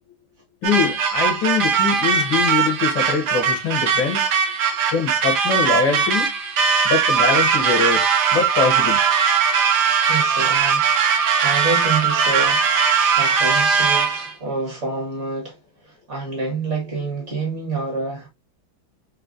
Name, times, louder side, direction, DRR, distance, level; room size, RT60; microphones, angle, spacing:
voice 1, 0.6-4.3 4.9-6.3 6.8-9.0, left 5 dB, 80° left, 1.8 m, -23 dB
sound 1, 0.6-14.3, right 6 dB, 65° right, 1.2 m, -19 dB
voice 2, 10.1-11.0 11.4-15.6 16.1-18.3, right 3 dB, 40° right, 1.9 m, -27 dB
5.0 x 2.7 x 2.6 m
omnidirectional pair, 2.2 m